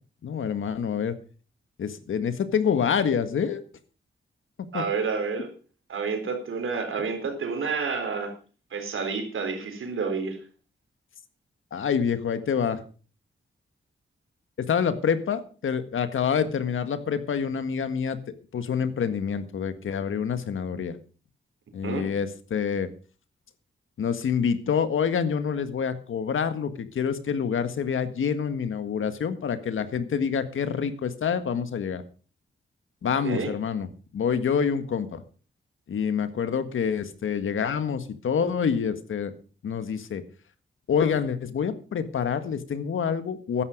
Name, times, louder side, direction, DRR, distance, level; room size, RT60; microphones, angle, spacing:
voice 1, 0.2-1.1 1.8-3.6 4.7-4.8 11.7-12.8 14.6-18.2 18.5-21.0 21.7-22.9 24.0-32.0 33.0-33.9 34.1-35.2 35.9-39.3 39.6-40.2 40.9-43.6, left 7 dB, 80° left, 10 dB, 1.7 m, -27 dB
voice 2, 4.7-5.5 5.9-8.3 8.7-10.4 21.8-22.0 33.2-33.5, right 5 dB, 80° right, 5 dB, 4.0 m, -29 dB
14.0 x 11.0 x 5.3 m, 0.38 s
cardioid pair, 65°, 21 cm